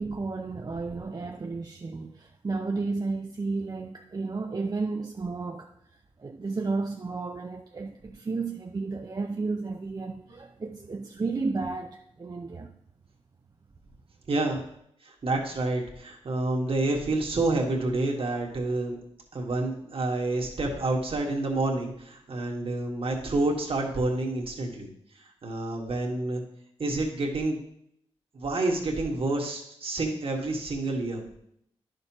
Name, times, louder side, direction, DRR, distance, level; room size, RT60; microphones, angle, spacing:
voice 1, 0.0-5.7 6.2-12.7, right 3 dB, 35° right, 0.6 m, -32 dB
voice 2, 14.3-14.6 15.0-19.0 19.3-24.9 25.4-26.4 26.8-27.6 28.3-31.2, right 2 dB, 55° right, 1.7 m, -28 dB
10.0 x 6.6 x 3.0 m
cardioid pair, 60°, 11 cm